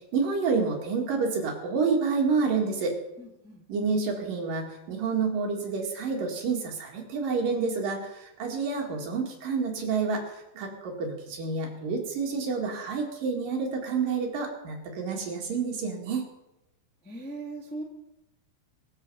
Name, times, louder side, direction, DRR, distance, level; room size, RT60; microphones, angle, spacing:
voice 1, 0.1-3.0 3.7-16.2, right 4 dB, 60° right, 0 dB, 3.6 m, -29 dB
voice 2, 3.2-3.6 17.0-17.8, right 2 dB, 5° left, -2 dB, 1.5 m, -39 dB
22.5 x 7.7 x 5.5 m, 0.91 s
omnidirectional pair, 4.7 m